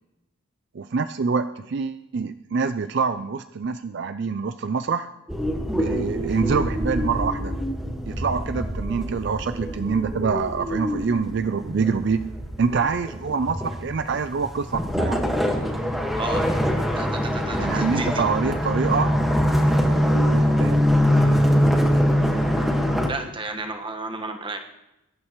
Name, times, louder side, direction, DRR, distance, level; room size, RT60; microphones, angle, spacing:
voice 1, 0.7-5.1 5.7-7.5 8.1-12.3 12.6-15.2 17.6-19.1 20.1-20.8, right 5 dB, 55° right, 10 dB, 0.4 m, -25 dB
sound 1, 5.3-23.1, equal, ahead, 1.6 m, -23 dB
voice 2, 17.0-18.2 23.1-24.6, right 2 dB, 25° right, 5 dB, 1.3 m, -32 dB
22.5 x 11.5 x 3.1 m, 0.94 s
head